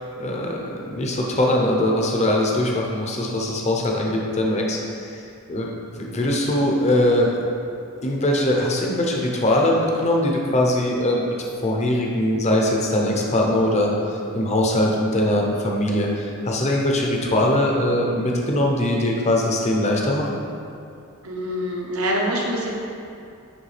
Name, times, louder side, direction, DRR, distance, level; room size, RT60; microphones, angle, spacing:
voice 1, 0.0-7.4 8.0-11.3 11.6-20.4, left 1 dB, 30° left, -1 dB, 0.7 m, -21 dB
voice 2, 21.2-22.7, equal, 70° right, -2 dB, 1.0 m, -25 dB
9.6 x 3.3 x 3.3 m, 2.5 s
head